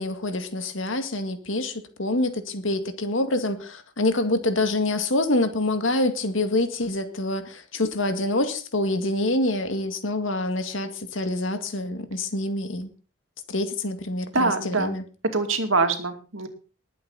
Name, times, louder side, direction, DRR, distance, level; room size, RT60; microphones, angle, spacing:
voice 1, 0.0-12.9 13.5-15.0, left 2 dB, 85° left, 8 dB, 2.0 m, -26 dB
voice 2, 14.3-15.0 15.3-16.5, right 3 dB, 90° right, 6 dB, 2.5 m, -24 dB
20.0 x 8.5 x 4.1 m, 0.35 s
head